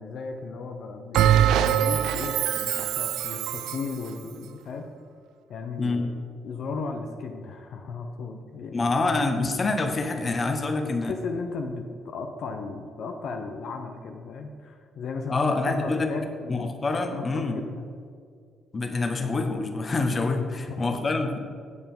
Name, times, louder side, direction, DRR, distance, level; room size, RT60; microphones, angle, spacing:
voice 1, 0.0-4.9 5.5-6.1 6.4-9.2 10.8-16.7 17.1-17.8 20.7-21.0, left 4 dB, 70° left, 4 dB, 0.7 m, -36 dB
Bell, 1.1-3.9, right 10 dB, 85° right, 0.4 m, -23 dB
voice 2, 5.8-6.1 8.7-11.1 15.3-16.1 16.5-17.6 18.7-21.4, left 3 dB, 35° left, 5 dB, 1.1 m, -26 dB
8.2 x 6.9 x 5.5 m, 2.2 s
cardioid pair, 90°, 0 cm